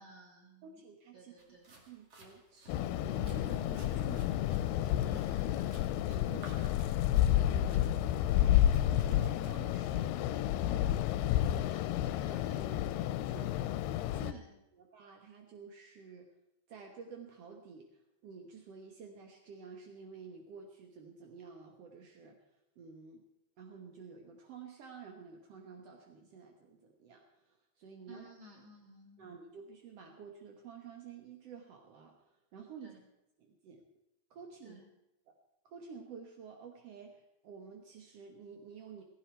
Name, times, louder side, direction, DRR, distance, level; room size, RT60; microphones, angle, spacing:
voice 1, 0.0-0.8 1.1-1.8 5.0-6.0 11.6-11.9 12.2-12.7 14.2-14.6 28.1-29.3 32.8-33.0 34.6-34.9, equal, 25° right, 0 dB, 3.1 m, -56 dB
voice 2, 0.6-1.3 1.7-4.5 5.1-5.2 6.1-6.6 7.5-8.0 8.8-10.1 12.2-13.5 14.1-14.4 14.7-16.3 16.7-22.4 22.8-23.2 23.6-28.3 29.2-33.0 33.4-33.8 34.3-34.8 35.3-35.4 35.6-39.0, right 6 dB, 65° right, 2 dB, 1.6 m, -51 dB
sound 1, 1.4-9.5, right 2 dB, 45° right, 2.9 m, -59 dB
sound 2, 2.7-14.3, left 12 dB, 90° left, 2.7 m, -30 dB
16.5 x 16.5 x 4.5 m, 0.89 s
omnidirectional pair, 4.5 m